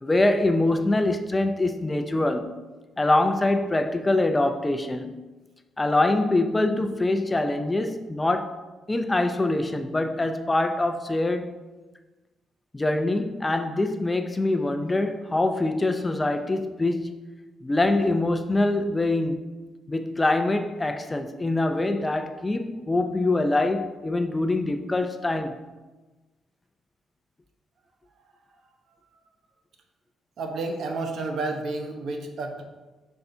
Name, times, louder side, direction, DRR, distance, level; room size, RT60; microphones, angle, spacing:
voice 1, 0.0-2.6 3.0-5.2 5.8-8.6 8.9-11.6 12.7-17.2 17.6-19.5 19.9-25.5, left 2 dB, 20° left, 0.5 m, -24 dB
voice 2, 30.4-32.6, right 3 dB, 65° right, 0.9 m, -30 dB
6.5 x 5.6 x 2.7 m
cardioid pair, 90°, 0 cm